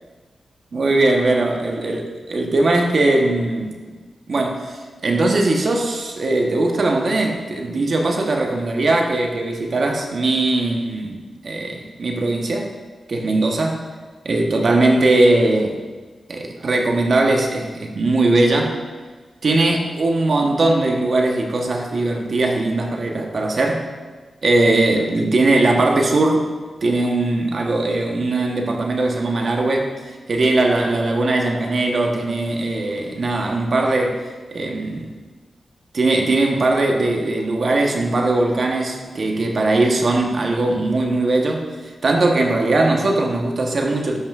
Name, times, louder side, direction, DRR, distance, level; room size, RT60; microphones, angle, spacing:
voice 1, 0.7-3.8 4.3-11.2 11.4-12.7 13.1-13.9 14.2-15.8 16.3-18.8 19.4-23.9 24.4-26.5 26.8-29.9 30.3-34.2 34.5-35.1 35.9-44.2, right 2 dB, 60° right, 2 dB, 1.0 m, -19 dB
11.0 x 5.5 x 2.4 m, 1.4 s
cardioid pair, 75°, 0 cm